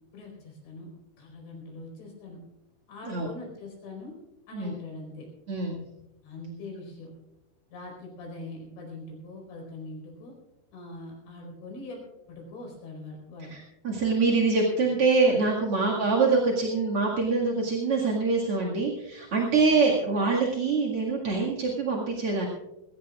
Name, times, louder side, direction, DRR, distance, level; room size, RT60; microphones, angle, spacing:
voice 1, 0.1-0.9 1.2-2.4 2.9-4.2 4.5-5.3 6.2-7.1 7.7-10.3 10.7-12.0 12.3-13.6 15.9-16.0 19.4-19.8, left 2 dB, 70° left, 0 dB, 6.7 m, -42 dB
voice 2, 5.5-5.8 13.5-22.5, right 4 dB, 45° right, -3 dB, 2.0 m, -25 dB
22.0 x 18.0 x 2.4 m, 0.91 s
omnidirectional pair, 5.4 m